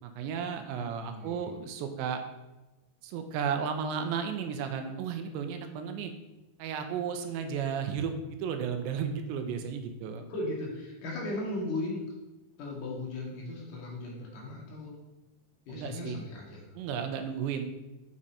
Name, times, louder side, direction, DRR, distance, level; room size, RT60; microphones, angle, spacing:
voice 1, 0.0-2.2 3.0-6.1 6.6-10.3 15.7-16.2 16.8-17.6, right 7 dB, 80° right, 7 dB, 2.9 m, -34 dB
voice 2, 0.8-1.5 10.3-12.1 12.6-14.9 15.7-16.8, left 2 dB, 60° left, -3 dB, 2.5 m, -37 dB
6.4 x 6.0 x 4.2 m, 1.0 s
omnidirectional pair, 5.2 m